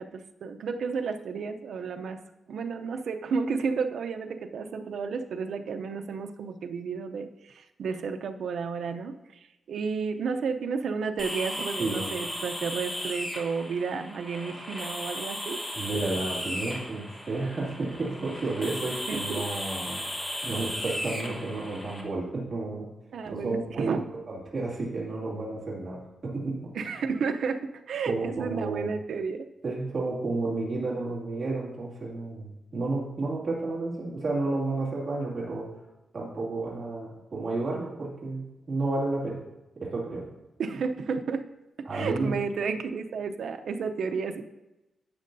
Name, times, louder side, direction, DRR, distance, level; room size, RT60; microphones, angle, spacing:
voice 1, 0.0-2.2 2.5-15.6 19.1-19.4 23.1-24.1 26.7-27.6 27.9-29.5 40.6-41.4 41.9-44.4, right 5 dB, 75° right, 6 dB, 0.6 m, -32 dB
sound 1, 11.2-22.0, equal, 15° left, 1.4 m, -36 dB
voice 2, 11.8-12.1 15.7-20.0 20.4-22.9 23.3-24.0 24.3-26.7 28.1-28.9 29.6-35.7 36.1-39.4 39.8-40.3 41.8-42.3, right 2 dB, 30° right, -6 dB, 2.4 m, -31 dB
12.0 x 8.3 x 2.7 m, 0.98 s
wide cardioid pair, 150°, 0 cm